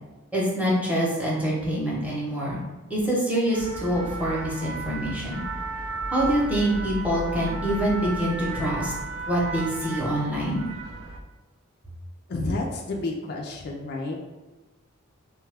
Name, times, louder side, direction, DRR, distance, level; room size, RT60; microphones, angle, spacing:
voice 1, 0.3-2.6 2.9-5.4 6.1-8.9 9.3-10.6, right 1 dB, 5° right, -5 dB, 0.8 m, -25 dB
sound 1, 3.5-11.2, right 3 dB, 65° right, 0.4 m, -34 dB
voice 2, 12.3-14.2, left 2 dB, 50° left, 1 dB, 0.4 m, -30 dB
3.1 x 2.3 x 3.3 m, 1.2 s
head